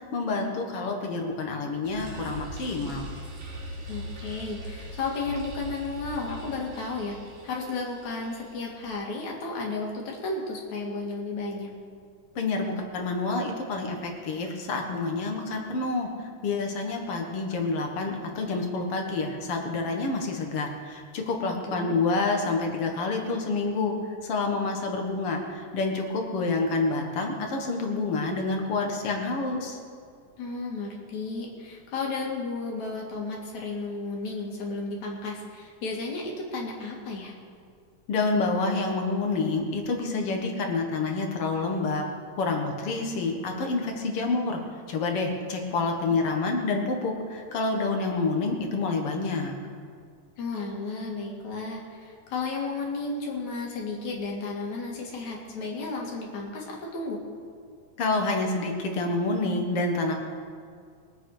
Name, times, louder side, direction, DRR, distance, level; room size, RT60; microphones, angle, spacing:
voice 1, 0.1-3.1 12.4-23.9 24.2-29.8 38.1-42.0 42.4-44.6 44.9-49.6 58.0-60.1, left 3 dB, 55° left, 3 dB, 2.2 m, -28 dB
sound 1, 1.8-9.0, equal, 90° right, 4.0 m, -41 dB
voice 2, 3.9-7.2 7.4-11.7 21.6-22.0 30.4-37.4 50.4-57.2, left 3 dB, 70° left, -2 dB, 3.4 m, -33 dB
22.5 x 8.5 x 4.9 m, 2.2 s
omnidirectional pair, 3.5 m